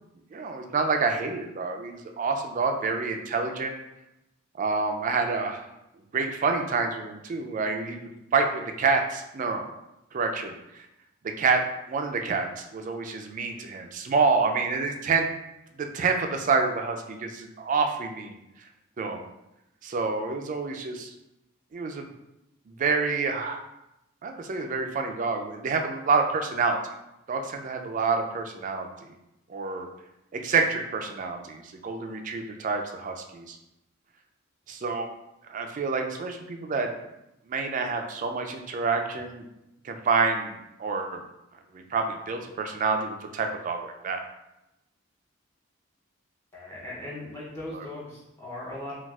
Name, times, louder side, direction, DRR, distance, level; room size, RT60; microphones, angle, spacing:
voice 1, 0.3-3.7 4.6-5.6 6.1-9.7 10.1-10.9 11.4-11.6 11.9-15.3 15.8-18.4 19.0-19.2 19.8-21.1 21.7-22.1 22.7-23.6 24.2-26.8 27.3-29.1 29.5-29.9 30.3-33.6 34.7-35.1 35.5-36.9 37.5-39.4 39.8-41.2 41.7-44.2, right 4 dB, 40° right, 5 dB, 0.3 m, -28 dB
voice 2, 46.5-48.9, left 1 dB, 10° left, -7 dB, 0.6 m, -38 dB
4.0 x 2.3 x 2.3 m, 0.90 s
head